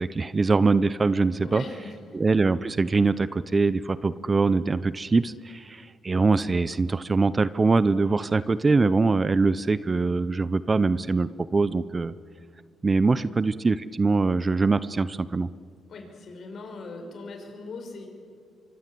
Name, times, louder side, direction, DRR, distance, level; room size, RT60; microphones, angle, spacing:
voice 1, 0.0-1.6 2.1-12.1 12.8-15.5, right 3 dB, 30° right, 16 dB, 0.6 m, -23 dB
voice 2, 1.4-2.2 8.2-8.5 13.2-13.3 15.9-18.1, left 3 dB, 55° left, 4 dB, 5.9 m, -40 dB
25.0 x 24.0 x 7.7 m, 2.1 s
cardioid pair, 90°, 0 cm